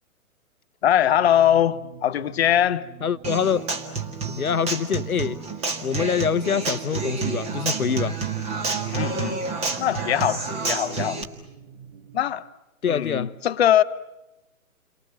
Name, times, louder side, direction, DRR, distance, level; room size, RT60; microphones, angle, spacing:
voice 1, 0.8-2.9 8.9-9.4 9.8-11.2 12.1-12.4 12.9-13.8, left 10 dB, 45° left, 1.1 m, -21 dB
sound 1, 1.0-12.2, right 7 dB, 50° right, 2.6 m, -47 dB
voice 2, 3.0-3.7 4.3-5.4 5.8-8.2 12.8-13.4, left 7 dB, 80° left, 1.1 m, -25 dB
Human voice / Acoustic guitar, 3.2-11.2, right 4 dB, 15° right, 1.8 m, -29 dB
29.5 x 24.0 x 7.2 m
figure-of-eight pair, 135°, 43 cm